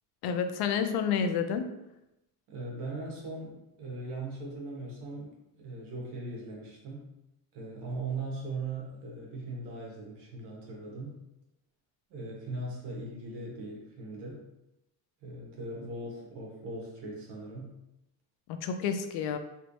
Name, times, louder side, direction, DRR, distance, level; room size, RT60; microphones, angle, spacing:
voice 1, 0.2-1.7 18.5-19.4, left 7 dB, 75° left, 8 dB, 0.5 m, -29 dB
voice 2, 2.5-7.1 7.5-11.2 12.1-14.4 15.2-17.8, right 2 dB, 90° right, -2 dB, 1.3 m, -39 dB
3.2 x 2.6 x 3.1 m, 0.89 s
cardioid pair, 170°, 39 cm